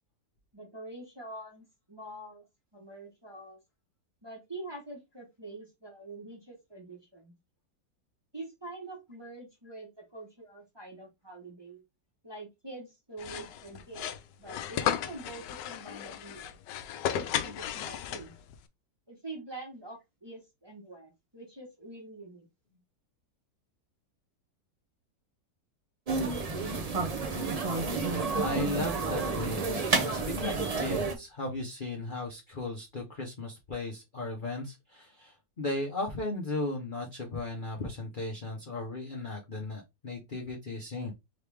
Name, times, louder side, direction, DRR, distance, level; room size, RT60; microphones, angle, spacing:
voice 1, 0.5-2.4 2.7-3.6 4.2-7.3 8.3-11.8 12.2-14.1 14.4-16.5 17.1-18.3 19.1-22.5, right 2 dB, 15° right, 1.1 m, -45 dB
sound 1, 13.2-18.5, left 10 dB, 80° left, 1.2 m, -34 dB
sound 2, 26.1-31.2, right 4 dB, 85° right, 0.3 m, -30 dB
voice 2, 28.4-41.1, left 2 dB, 40° left, 0.7 m, -36 dB
3.8 x 3.2 x 3.4 m
omnidirectional pair, 1.9 m